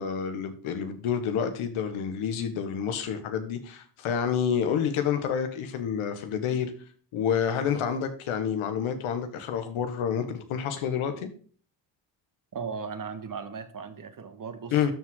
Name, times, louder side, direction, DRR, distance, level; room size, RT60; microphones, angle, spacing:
voice 1, 0.0-6.7 7.1-11.3 14.7-14.9, left 7 dB, 85° left, 1.6 m, -28 dB
voice 2, 12.5-14.9, right 5 dB, 40° right, 1.6 m, -37 dB
13.0 x 4.8 x 3.8 m
supercardioid pair, 70°, 49 cm